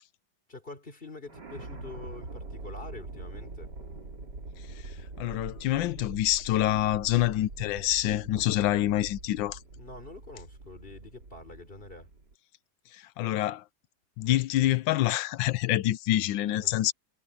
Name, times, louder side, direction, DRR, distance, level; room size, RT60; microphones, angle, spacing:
voice 1, 0.5-3.7 9.7-12.1 16.6-16.8, left 3 dB, 25° left, 4.1 m, -46 dB
sound 1, 1.3-12.3, right 3 dB, 60° right, 4.2 m, -43 dB
voice 2, 5.2-9.6 12.9-13.6 14.2-16.9, left 14 dB, 90° left, 1.4 m, -26 dB
omnidirectional pair, 2.1 m